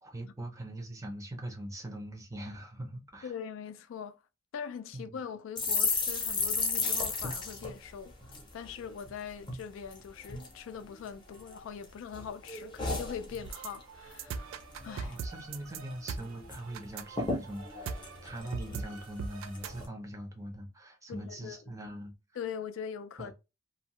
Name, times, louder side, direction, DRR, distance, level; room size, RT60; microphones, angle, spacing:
voice 1, 0.0-3.3 4.9-5.2 15.0-22.1 23.2-23.3, right 1 dB, 15° right, 0.5 m, -42 dB
voice 2, 3.2-4.2 4.5-8.1 8.5-14.5 14.8-15.2 21.1-21.6 22.4-23.3, left 7 dB, 70° left, 0.3 m, -42 dB
sound 1, 5.6-9.1 9.4-9.6 9.9-10.5 11.0-11.8 12.1-13.8 14.1-14.3 14.6-15.2 15.5-15.6 15.9-16.6 16.9-17.0 17.2-19.0 19.5-19.9, left 4 dB, 25° left, 0.6 m, -34 dB
sound 2, 13.4-19.8, right 5 dB, 75° right, 0.3 m, -41 dB
2.6 x 2.1 x 2.9 m
head